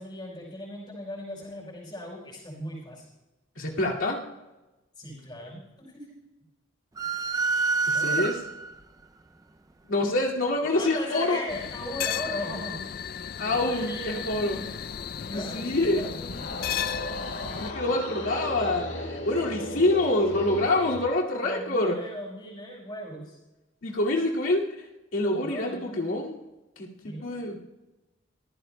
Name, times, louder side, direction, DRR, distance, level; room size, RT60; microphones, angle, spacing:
voice 1, 0.0-3.0 4.9-6.1 7.9-8.3 10.7-12.8 13.6-14.7 15.3-16.4 21.4-23.4 25.2-26.2 27.0-27.4, left 1 dB, 25° left, -5 dB, 4.7 m, -38 dB
voice 2, 3.6-4.3 7.9-8.4 9.8-11.4 13.4-14.6 15.3-16.0 17.6-22.0 23.8-24.8 25.1-26.4 26.8-27.6, left 2 dB, 90° left, -3 dB, 2.3 m, -26 dB
sound 1, 7.0-8.8, right 4 dB, 15° right, 0.4 m, -27 dB
sound 2, 11.5-17.7, left 9 dB, 45° left, 0.4 m, -34 dB
sound 3, 16.2-21.1, left 1 dB, 70° left, 6.1 m, -35 dB
25.0 x 15.0 x 2.2 m, 1.0 s
head